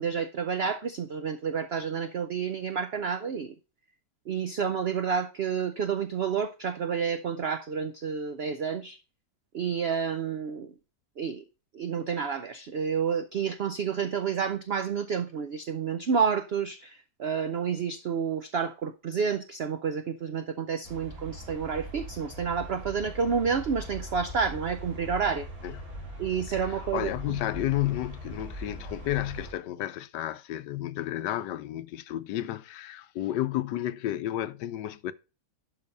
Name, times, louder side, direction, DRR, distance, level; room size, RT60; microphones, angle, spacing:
voice 1, 0.0-3.5 4.3-9.0 9.5-10.7 11.2-11.4 11.7-25.5 26.2-27.1, right 6 dB, 80° right, 0.5 m, -29 dB
sound 1, 20.9-29.5, right 1 dB, 55° right, 3.1 m, -41 dB
voice 2, 26.5-35.1, left 13 dB, 85° left, 1.3 m, -32 dB
11.5 x 3.9 x 5.3 m
omnidirectional pair, 1.8 m